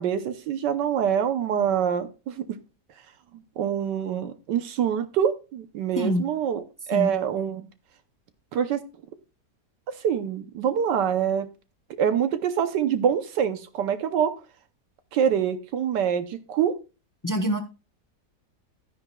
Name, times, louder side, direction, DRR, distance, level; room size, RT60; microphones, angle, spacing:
voice 1, 0.0-2.4 3.6-6.6 6.9-7.6 8.5-8.8 10.0-11.5 12.0-14.3 15.1-16.7, right 8 dB, 80° right, 10 dB, 1.4 m, -25 dB
voice 2, 6.0-6.3 6.9-7.1 17.2-17.6, equal, 30° left, 5 dB, 0.3 m, -25 dB
12.0 x 10.0 x 2.3 m, 0.30 s
omnidirectional pair, 1.9 m